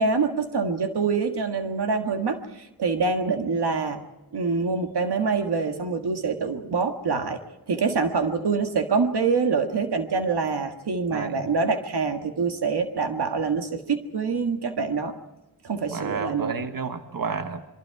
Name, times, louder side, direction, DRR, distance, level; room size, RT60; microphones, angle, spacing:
voice 1, 0.0-4.0 4.3-7.4 7.7-15.1 15.6-16.6, right 4 dB, 90° right, 6 dB, 1.8 m, -25 dB
voice 2, 11.1-11.4 15.9-17.6, right 5 dB, 60° right, 8 dB, 1.5 m, -31 dB
27.0 x 23.0 x 4.8 m, 1.0 s
wide cardioid pair, 80°, 38 cm